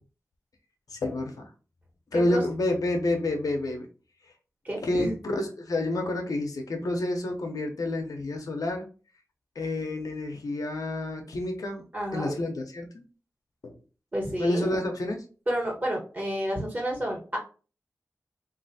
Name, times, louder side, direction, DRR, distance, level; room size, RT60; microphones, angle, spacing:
voice 1, 0.9-1.4 2.1-3.9 4.8-8.8 9.6-11.8 12.1-13.0 13.6-13.7 14.4-15.2, left 1 dB, 80° left, 3 dB, 0.6 m, -29 dB
voice 2, 4.6-5.1 11.9-12.3 14.1-14.8 15.5-17.4, equal, 30° right, -1 dB, 1.2 m, -30 dB
3.2 x 2.5 x 2.6 m, 0.36 s
wide cardioid pair, 60°, 6 cm